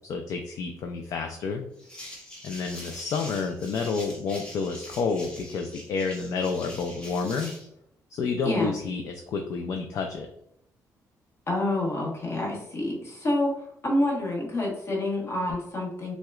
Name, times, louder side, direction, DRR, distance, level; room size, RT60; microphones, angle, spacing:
voice 1, 0.1-1.7 2.4-7.5 8.1-10.3, left 4 dB, 55° left, 3 dB, 0.4 m, -30 dB
sound 1, 1.8-7.7, left 1 dB, 15° left, 0.9 m, -43 dB
voice 2, 11.5-16.1, left 1 dB, 40° left, -2 dB, 1.1 m, -28 dB
5.7 x 2.1 x 2.3 m, 0.75 s
cardioid pair, 170°, 6 cm